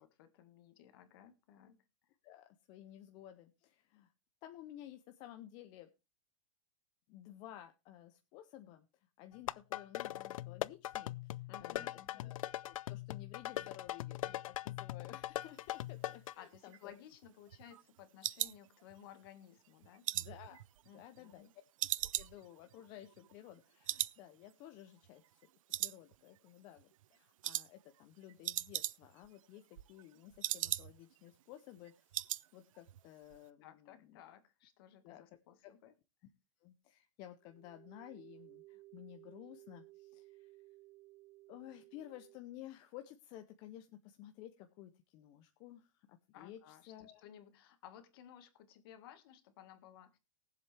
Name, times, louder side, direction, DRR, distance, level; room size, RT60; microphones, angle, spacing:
voice 1, 0.0-1.8 11.5-12.3 16.4-20.1 20.8-21.5 33.6-35.9 46.3-50.2, left 10 dB, 45° left, 9 dB, 1.7 m, -57 dB
voice 2, 2.2-4.1 4.4-5.9 7.1-11.3 11.6-16.9 20.1-20.6 20.9-21.5 22.0-25.4 25.8-31.9 32.5-34.2 35.0-35.2 35.6-35.7 36.6-40.5 41.5-47.2, left 12 dB, 25° left, 7 dB, 0.6 m, -54 dB
sound 1, 9.3-16.3, left 14 dB, 85° left, 0.5 m, -41 dB
sound 2, 16.5-19.3 19.6-21.4 21.8-23.6 23.8-24.2 24.5-24.6 25.0-25.4 25.7-26.5 26.8-27.0 27.4-27.7 28.0-28.1 28.3-29.3 29.6-31.2 31.5-31.6 31.8-32.5 32.7-33.0 33.3-33.4, right 13 dB, 75° right, 0.5 m, -39 dB
sound 3, 37.4-42.4, right 19 dB, 35° right, 1.4 m, -58 dB
19.5 x 7.6 x 3.3 m, 0.28 s
supercardioid pair, 175°, 17 cm